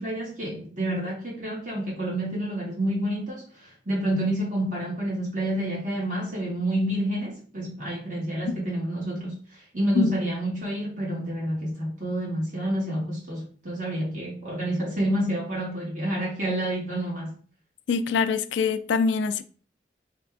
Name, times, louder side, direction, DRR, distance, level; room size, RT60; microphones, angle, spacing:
voice 1, 0.0-17.3, right 1 dB, 45° right, 1.8 m, -29 dB
voice 2, 17.9-19.4, left 5 dB, 75° left, 0.3 m, -24 dB
3.4 x 3.3 x 3.5 m
head